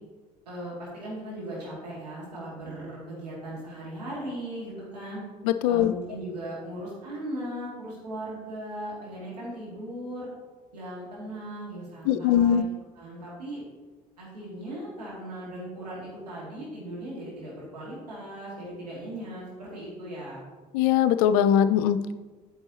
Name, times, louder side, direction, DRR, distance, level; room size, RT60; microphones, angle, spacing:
voice 1, 0.5-5.2 5.7-10.3 10.7-12.7 13.0-13.6 14.2-20.4, right 1 dB, 80° right, -6 dB, 2.4 m, -38 dB
voice 2, 5.4-5.9 12.1-12.6 20.7-22.1, left 9 dB, 60° left, 12 dB, 0.4 m, -21 dB
8.8 x 7.0 x 2.9 m, 1.3 s
figure-of-eight pair, 55°, 21 cm